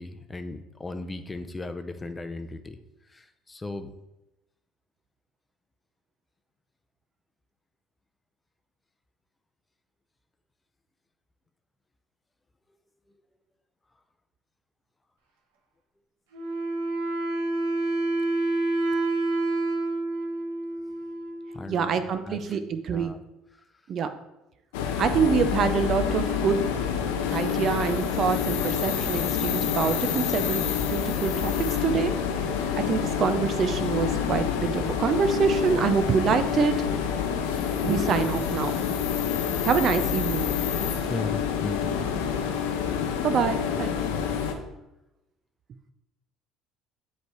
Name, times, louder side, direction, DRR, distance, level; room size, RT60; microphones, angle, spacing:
voice 1, 0.0-2.8 3.1-3.9 21.5-22.0 22.2-22.6 22.9-23.2 41.1-42.0 44.1-44.4, left 2 dB, 20° left, 9 dB, 0.5 m, -36 dB
Wind instrument woodwind instrument, 16.3-21.8, right 2 dB, 90° right, 1.1 m, -28 dB
voice 2, 21.7-23.1 23.9-24.1 25.0-26.7 27.3-30.6 30.9-32.1 32.8-37.0 37.8-38.7 39.6-40.5 43.2-43.9, right 6 dB, 50° right, 10 dB, 0.5 m, -26 dB
sound 1, 24.7-44.5, left 7 dB, 90° left, 0.6 m, -27 dB
7.9 x 3.3 x 4.7 m, 0.93 s
supercardioid pair, 85°, 0 cm